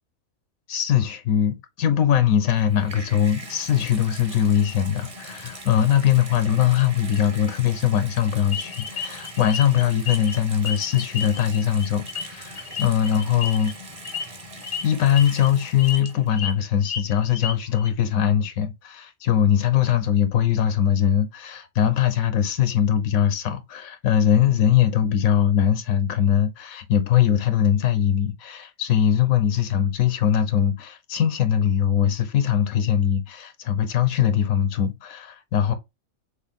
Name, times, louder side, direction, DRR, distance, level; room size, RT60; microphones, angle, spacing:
voice 1, 0.7-13.7 14.8-35.7, left 9 dB, 80° left, 1.1 m, -21 dB
Water tap faucet / Bathtub (filling or washing), 2.4-16.5 17.3-17.4, right 1 dB, 30° right, 0.9 m, -41 dB
sound 1, 8.5-10.4 10.6-13.7 14.0-14.3 14.6-14.8 15.2-15.5 15.8-16.5 16.8-17.9, left 6 dB, 60° left, 0.8 m, -32 dB
6.3 x 2.1 x 3.5 m
omnidirectional pair, 1.5 m